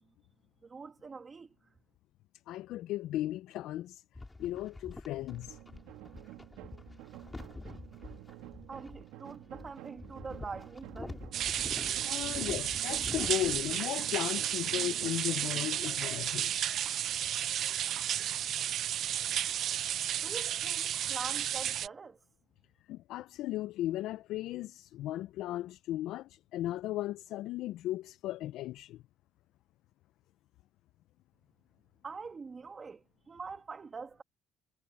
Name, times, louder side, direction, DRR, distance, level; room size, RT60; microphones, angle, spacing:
voice 1, 0.6-1.7 8.7-11.2 20.2-22.2 32.0-34.2, right 4 dB, 30° right, 1.5 m, -44 dB
voice 2, 2.5-4.0 4.4-5.6 12.0-16.5 22.9-29.0, left 14 dB, 75° left, 0.4 m, -36 dB
sound 1, 4.1-13.7, left 2 dB, 15° left, 3.1 m, -46 dB
sound 2, 5.3-15.7, right 16 dB, 90° right, 2.3 m, -50 dB
sound 3, 11.3-21.9, right 10 dB, 55° right, 0.5 m, -33 dB
cardioid pair, 120°, 0 cm